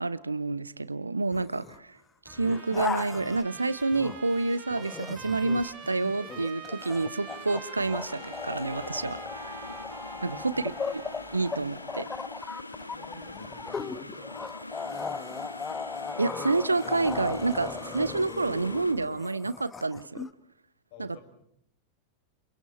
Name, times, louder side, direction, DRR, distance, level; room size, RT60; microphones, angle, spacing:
voice 1, 0.0-2.0 2.2-9.7 10.2-10.5 11.3-12.1 12.4-12.5 16.2-20.2 21.0-21.1, right 3 dB, 80° right, 16 dB, 0.9 m, -29 dB
sound 1, 1.3-1.8 2.3-4.3 4.7-20.3, left 5 dB, 15° left, 1.2 m, -38 dB
sound 2, 2.3-18.9, left 2 dB, 85° left, 1.3 m, -44 dB
Trumpet, 2.3-11.5, right 9 dB, 25° right, 1.8 m, -47 dB
voice 2, 10.1-10.7 12.9-14.7 20.9-21.4, left 6 dB, 45° left, 4 dB, 7.0 m, -51 dB
30.0 x 28.0 x 4.4 m, 0.70 s
figure-of-eight pair, 90°, 0 cm